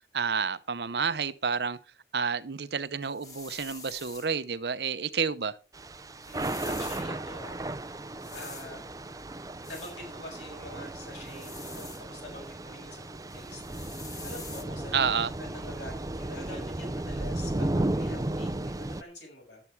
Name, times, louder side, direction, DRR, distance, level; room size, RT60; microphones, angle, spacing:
voice 1, 0.1-1.8 2.1-5.6 14.9-15.3, right 6 dB, 60° right, 0.7 m, -29 dB
Deospray Antiperspirant, 3.0-4.3 6.2-7.1 8.2-8.7 9.6-10.0 11.2-12.0 13.3-14.6, left 3 dB, 20° left, 1.5 m, -45 dB
Thunder / Rain, 5.7-19.0, right 1 dB, 20° right, 0.5 m, -35 dB
voice 2, 6.2-7.6 8.3-8.9 9.6-13.6 14.1-19.6, left 1 dB, 80° left, 6.7 m, -45 dB
12.0 x 8.5 x 4.6 m
head